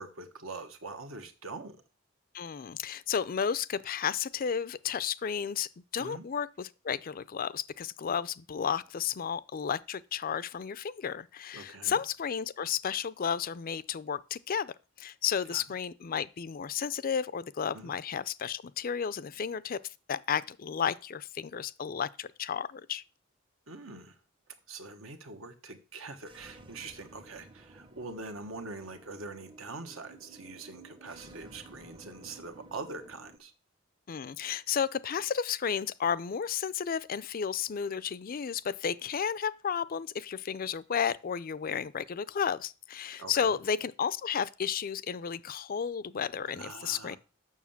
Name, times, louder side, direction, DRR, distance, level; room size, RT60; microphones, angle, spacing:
voice 1, 0.0-1.8 6.0-6.3 11.5-12.0 15.5-15.6 17.7-17.9 23.7-24.2 24.7-33.5 43.2-43.5 46.5-47.2, right 3 dB, 75° right, 1.3 m, -43 dB
voice 2, 2.3-19.8 20.1-23.0 34.1-47.2, left 7 dB, 45° left, 0.4 m, -33 dB
sound 1, 26.2-33.4, right 2 dB, 25° right, 0.7 m, -53 dB
7.3 x 6.4 x 7.1 m
head